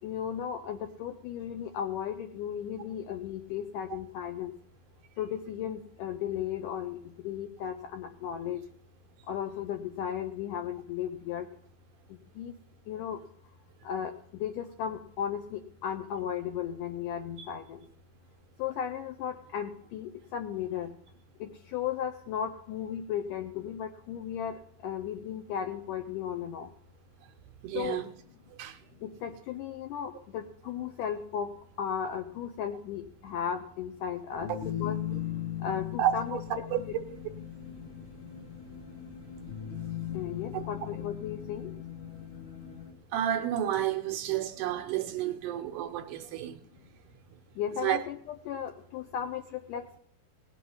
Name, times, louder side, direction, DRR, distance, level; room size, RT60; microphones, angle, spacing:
voice 1, 0.0-4.5 5.2-7.0 7.2-8.6 9.3-11.5 12.4-12.5 12.9-13.2 13.8-14.1 14.4-17.8 18.6-20.9 21.4-26.7 27.7-28.0 29.0-31.5 31.8-34.5 34.8-35.0 35.6-36.4 36.9-37.0 40.1-41.7 47.6-48.2 48.5-50.0, left 9 dB, 80° left, 2.0 m, -35 dB
voice 2, 27.6-28.1 28.6-28.8 36.0-36.4 43.1-46.6 47.8-48.0, right 11 dB, 75° right, 2.0 m, -30 dB
sound 1, 34.3-42.9, left 10 dB, 40° left, 0.9 m, -38 dB
18.0 x 6.1 x 5.4 m
omnidirectional pair, 4.2 m